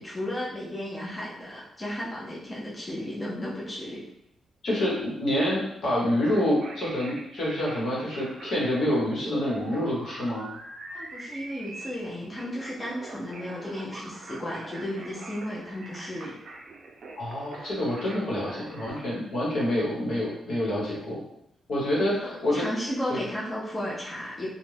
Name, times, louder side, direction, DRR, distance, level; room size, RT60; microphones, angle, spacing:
voice 1, 0.0-4.0 10.9-16.3 21.9-24.5, left 1 dB, 20° left, -5 dB, 0.6 m, -34 dB
voice 2, 4.6-10.5 17.2-21.2 21.7-22.6 23.1-23.2, left 1 dB, 70° left, -5 dB, 1.1 m, -27 dB
sound 1, 6.3-19.1, right 2 dB, 50° right, 0.4 m, -43 dB
2.4 x 2.1 x 3.2 m, 0.80 s
cardioid pair, 115°, 0 cm